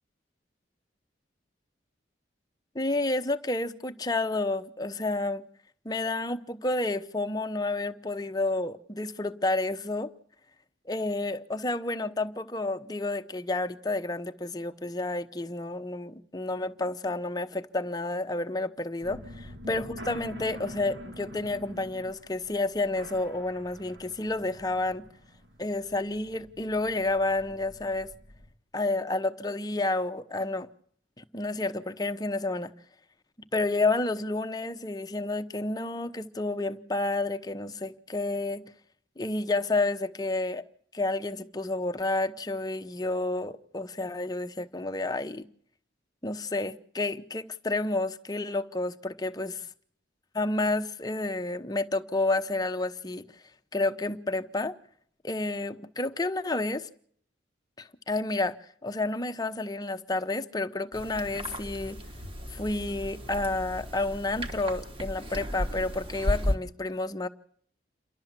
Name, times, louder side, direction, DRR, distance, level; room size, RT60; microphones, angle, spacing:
voice 1, 2.7-5.4 5.8-10.1 10.9-25.1 25.6-28.1 28.7-30.7 31.2-32.7 33.5-38.6 39.2-40.6 40.9-45.5 46.2-49.5 50.3-53.2 53.7-54.7 55.2-56.9 57.8-58.6 58.8-62.0 62.5-67.3, left 2 dB, 20° left, 0.9 m, -30 dB
sound 1, 19.0-28.5, equal, 70° right, 1.9 m, -46 dB
sound 2, 60.9-66.6, equal, 30° right, 1.5 m, -34 dB
28.0 x 12.5 x 7.5 m
head